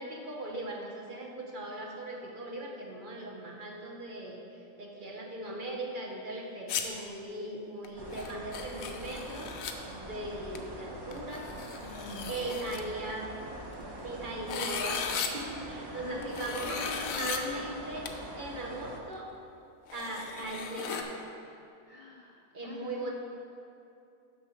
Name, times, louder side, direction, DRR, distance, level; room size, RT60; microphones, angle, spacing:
voice 1, 0.0-9.5 9.9-11.5 12.2-13.3 14.0-15.0 15.3-18.1 18.3-19.3 19.9-21.1 22.5-23.1, right 1 dB, 45° right, -1 dB, 0.9 m, -39 dB
sound 1, 6.7-6.8 7.8-7.9 8.1-9.7 10.5-10.6 11.1-12.8 13.7-14.0 14.5-15.3 16.2-17.4 18.1-18.2 19.1-19.2 19.9-21.0, left 7 dB, 85° left, 1.1 m, -37 dB
sound 2, 8.0-19.0, right 1 dB, 25° right, 0.6 m, -43 dB
voice 2, 11.8-12.9 16.0-17.4 21.9-23.1, left 3 dB, 45° left, -1 dB, 0.4 m, -45 dB
6.9 x 6.3 x 5.6 m, 2.7 s
omnidirectional pair, 1.4 m